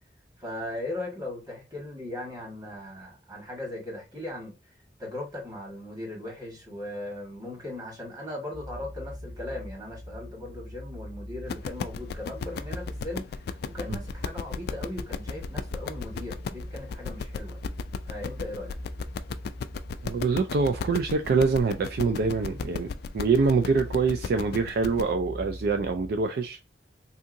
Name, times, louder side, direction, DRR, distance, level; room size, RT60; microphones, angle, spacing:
voice 1, 0.4-4.6 5.0-13.4 13.6-17.6 18.1-18.7, left 1 dB, 25° right, 1.5 m, -38 dB
sound 1, 8.5-26.3, equal, 5° right, 0.8 m, -42 dB
sound 2, 11.5-25.1, left 5 dB, 60° left, 0.3 m, -35 dB
voice 2, 20.0-22.9 23.1-26.6, right 4 dB, 60° right, 0.3 m, -25 dB
3.5 x 2.8 x 2.5 m
head